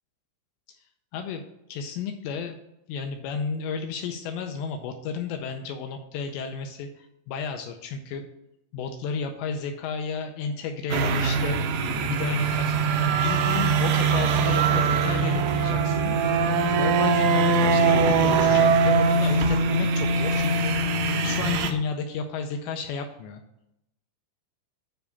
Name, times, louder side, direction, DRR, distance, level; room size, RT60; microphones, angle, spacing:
voice 1, 1.7-2.6 2.9-8.2 8.7-16.2 16.8-20.8 21.2-23.4, left 5 dB, 80° left, 5 dB, 2.7 m, -32 dB
sound 1, 10.9-21.7, right 4 dB, 80° right, 2.9 m, -22 dB
9.5 x 3.4 x 7.0 m, 0.84 s
omnidirectional pair, 5.5 m